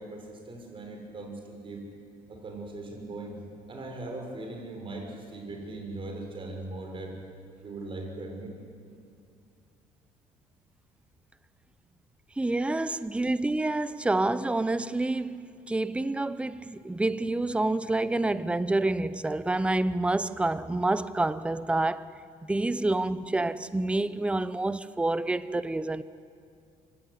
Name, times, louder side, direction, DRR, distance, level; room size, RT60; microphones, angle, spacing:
voice 1, 0.0-1.9 2.3-3.4 3.7-7.2 7.6-8.5, right 2 dB, 35° right, 5.8 m, -39 dB
voice 2, 12.4-22.1 22.4-26.0, right 2 dB, 5° right, 0.7 m, -28 dB
24.5 x 16.5 x 9.8 m
cardioid pair, 115°, 15 cm